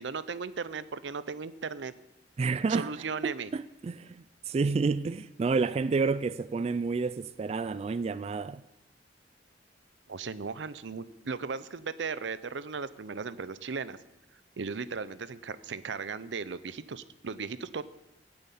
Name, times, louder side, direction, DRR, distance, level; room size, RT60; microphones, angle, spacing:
voice 1, 0.0-1.9 2.6-3.5 10.1-14.0 14.6-17.8, right 5 dB, 90° right, 0.6 m, -36 dB
voice 2, 2.4-2.9 3.2-8.6, right 4 dB, 35° right, 0.3 m, -30 dB
9.5 x 7.9 x 8.4 m
head